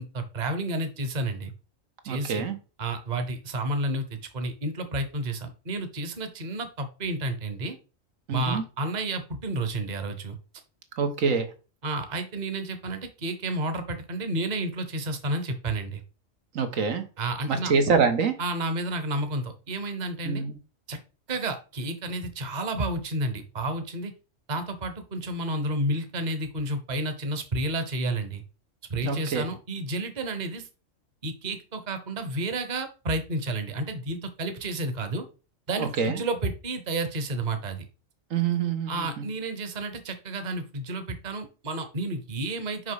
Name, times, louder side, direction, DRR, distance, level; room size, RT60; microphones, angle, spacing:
voice 1, 0.0-1.5 2.0-2.4 2.8-7.8 8.3-10.4 11.8-16.0 17.2-17.7 18.4-20.4 20.9-21.0 21.3-24.1 24.5-28.4 28.9-30.7 31.2-35.2 35.7-37.8 38.9-42.9, right 2 dB, 35° right, 8 dB, 1.1 m, -31 dB
voice 2, 2.1-2.6 8.3-8.6 11.0-11.5 16.5-17.0 17.5-18.4 20.2-20.5 29.0-29.5 35.8-36.2 38.3-39.2, right 5 dB, 85° right, 8 dB, 1.6 m, -25 dB
6.0 x 5.3 x 4.8 m, 0.34 s
omnidirectional pair, 1.3 m